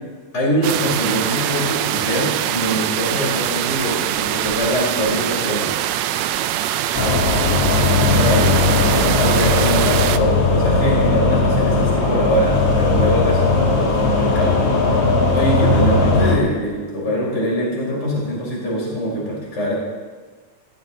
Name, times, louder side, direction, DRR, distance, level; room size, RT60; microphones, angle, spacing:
voice 1, 0.3-5.7 8.1-15.0 15.3-19.7, equal, 20° left, -4 dB, 4.5 m, -23 dB
sound 1, 0.6-10.2, right 12 dB, 85° right, 1.6 m, -22 dB
sound 2, 6.9-16.4, left 3 dB, 50° left, 2.6 m, -17 dB
17.0 x 15.0 x 3.7 m, 1.4 s
omnidirectional pair, 3.7 m